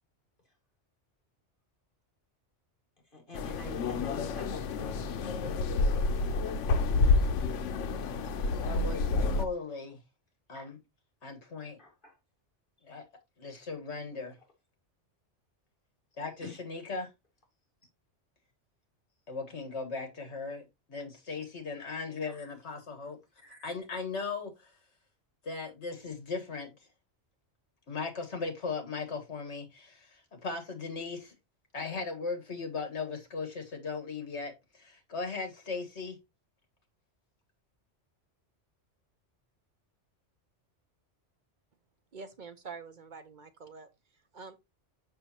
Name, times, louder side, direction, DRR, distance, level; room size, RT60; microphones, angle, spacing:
voice 1, 3.1-5.2 11.8-12.2 16.4-16.6 22.2-22.4 23.0-23.1 23.4-23.8, left 2 dB, 45° left, 2.4 m, -47 dB
sound 1, 3.3-9.4, left 3 dB, 85° left, 1.0 m, -29 dB
voice 2, 5.9-6.4 8.6-10.0 10.5-10.8 11.2-11.8 12.8-13.1 13.4-14.3 16.2-17.1 19.3-23.2 23.6-24.7 25.4-26.7 27.9-31.3 31.7-36.2, left 4 dB, 70° left, 1.8 m, -38 dB
voice 3, 42.1-43.9 44.3-44.6, right 5 dB, 50° right, 0.7 m, -46 dB
6.6 x 5.8 x 2.9 m
omnidirectional pair, 1.2 m